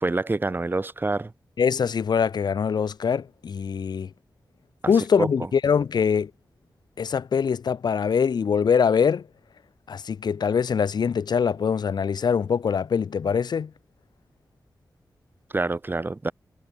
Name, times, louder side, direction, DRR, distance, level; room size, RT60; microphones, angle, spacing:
voice 1, 0.0-1.3 5.2-5.3 15.5-16.3, right 2 dB, 30° right, 1.9 m, -26 dB
voice 2, 1.6-4.1 4.9-6.3 7.0-9.2 9.9-13.7, left 6 dB, 85° left, 1.2 m, -23 dB
wide cardioid pair, 95°, 7 cm